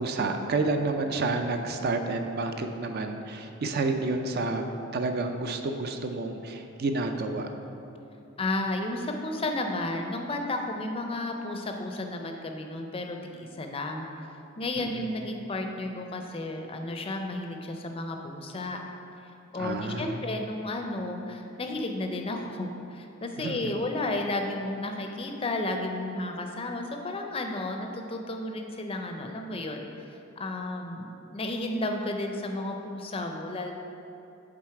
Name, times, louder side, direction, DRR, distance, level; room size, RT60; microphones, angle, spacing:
voice 1, 0.0-7.5 14.8-15.1 19.6-20.1 23.4-23.8, right 3 dB, 50° right, 6 dB, 0.4 m, -30 dB
voice 2, 8.4-14.1 14.6-18.8 19.5-29.9 30.4-33.7, left 2 dB, 25° left, 3 dB, 0.5 m, -32 dB
7.5 x 3.9 x 4.8 m, 2.8 s
head